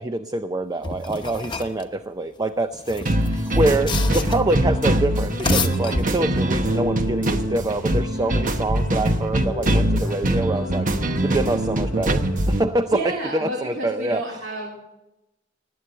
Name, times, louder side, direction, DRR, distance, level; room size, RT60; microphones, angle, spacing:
voice 1, 0.0-10.9 11.2-14.2, right 2 dB, 20° right, 10 dB, 0.5 m, -25 dB
sound 1, 0.8-1.8 2.7-4.6 5.2-6.5, left 3 dB, 25° left, 1.0 m, -29 dB
sound 2, 3.1-12.6, right 1 dB, 45° right, 1.0 m, -22 dB
sound 3, 3.6-12.5, left 2 dB, 65° left, 1.2 m, -37 dB
voice 2, 12.9-14.8, right 1 dB, 80° right, -2 dB, 2.7 m, -30 dB
19.0 x 8.3 x 7.9 m, 0.95 s
head